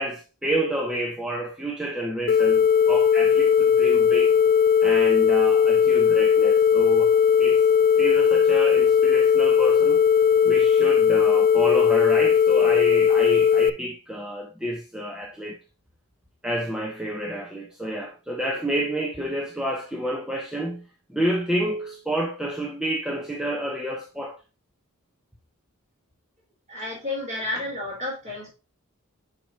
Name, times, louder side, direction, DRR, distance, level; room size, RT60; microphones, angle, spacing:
voice 1, 0.0-4.3 4.8-7.6 8.0-10.0 10.4-15.6 16.4-20.8 21.1-24.4, right 1 dB, 5° right, 0.8 m, -29 dB
sound 1, 2.3-13.7, left 7 dB, 40° left, 0.3 m, -18 dB
voice 2, 26.7-28.5, left 2 dB, 30° right, 4.3 m, -31 dB
7.7 x 6.0 x 2.8 m
head